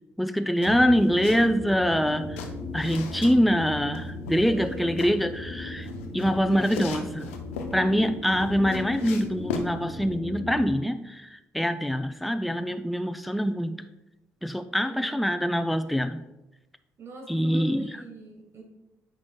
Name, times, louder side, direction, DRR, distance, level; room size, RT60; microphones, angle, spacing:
voice 1, 0.2-2.5 2.7-5.9 6.1-7.3 7.7-13.8 14.4-16.2 17.3-17.9, equal, ahead, 9 dB, 0.4 m, -24 dB
sound 1, 0.6-1.5 1.8-3.3 3.9-5.1 5.8-7.7 8.2-9.7, left 5 dB, 90° left, 0.5 m, -37 dB
sound 2, 0.6-10.7, left 2 dB, 75° right, 1.5 m, -37 dB
voice 2, 4.4-5.0 14.8-15.3 17.0-18.6, right 3 dB, 40° right, 0 dB, 1.6 m, -43 dB
8.5 x 4.9 x 2.3 m, 0.97 s
hypercardioid pair, 50°, 7 cm